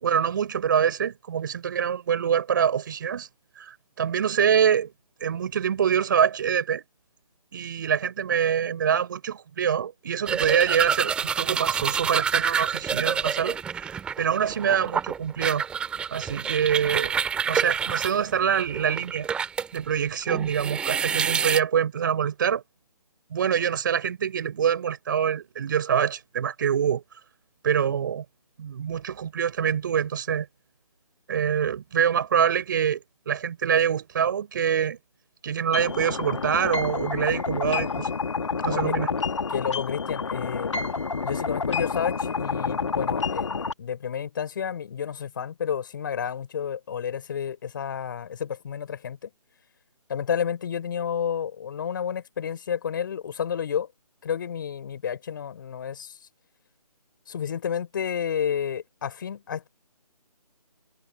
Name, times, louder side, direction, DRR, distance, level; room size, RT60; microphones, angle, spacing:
voice 1, 0.0-3.3 3.6-4.9 5.2-6.8 7.5-15.6 16.1-17.1 17.5-19.3 19.7-22.6 23.3-27.0 27.6-28.2 28.6-30.5 31.3-35.0 35.4-38.1 38.6-39.1, right 8 dB, 30° right, 4.5 m, -25 dB
sound 1, 10.3-19.8 20.2-21.6, right 7 dB, 5° right, 2.6 m, -28 dB
sound 2, 35.7-43.7, left 5 dB, 50° left, 1.8 m, -29 dB
voice 2, 38.6-39.0 39.5-40.7 41.2-49.3 50.1-53.9 54.2-56.1 57.3-59.7, left 8 dB, 30° left, 5.0 m, -30 dB
figure-of-eight pair, 155°, 20 cm